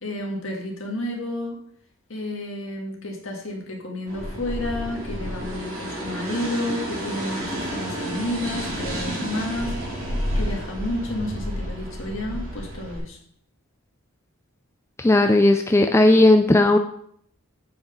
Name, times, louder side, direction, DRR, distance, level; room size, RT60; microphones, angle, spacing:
voice 1, 0.0-1.6 2.1-9.8 10.3-13.2, left 1 dB, 60° left, 0 dB, 1.9 m, -31 dB
sound 1, 4.1-13.0, equal, 75° right, 2.9 m, -30 dB
voice 2, 15.0-16.8, left 2 dB, 10° left, 5 dB, 0.3 m, -16 dB
7.7 x 5.0 x 5.4 m, 0.66 s
head